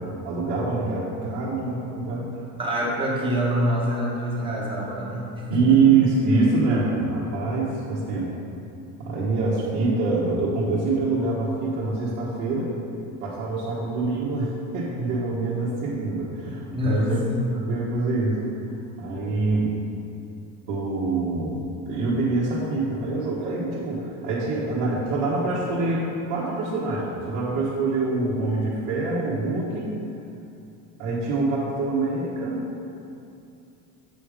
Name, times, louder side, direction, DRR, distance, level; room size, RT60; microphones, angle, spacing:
voice 1, 0.2-2.3 5.5-8.3 9.0-12.7 13.2-17.2 17.5-18.5 19.0-19.7 20.7-29.9 31.0-32.6, right 3 dB, 55° right, -8 dB, 1.4 m, -25 dB
voice 2, 2.6-5.8 16.7-17.3, equal, 15° right, -4 dB, 1.2 m, -26 dB
7.6 x 5.1 x 5.0 m, 2.6 s
cardioid pair, 175°, 32 cm